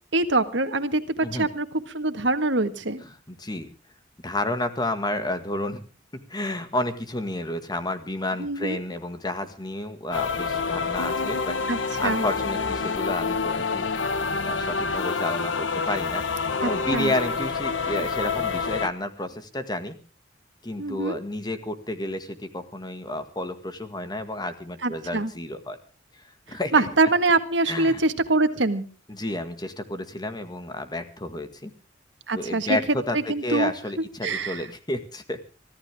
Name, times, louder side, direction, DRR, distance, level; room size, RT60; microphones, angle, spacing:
voice 1, 0.1-3.0 8.4-8.8 11.7-12.3 16.6-17.1 20.8-21.2 24.8-25.3 26.7-28.8 32.3-32.8 33.1-33.7 34.2-34.7, right 2 dB, 70° right, 9 dB, 1.7 m, -24 dB
voice 2, 3.0-3.7 4.2-5.8 6.3-13.9 14.2-20.0 20.6-25.8 26.2-26.9 27.7-28.0 29.1-31.7 32.3-35.4, left 1 dB, 25° left, 9 dB, 1.9 m, -31 dB
sound 1, 10.1-18.9, left 4 dB, 90° left, 1.1 m, -27 dB
24.5 x 14.0 x 3.6 m, 0.34 s
head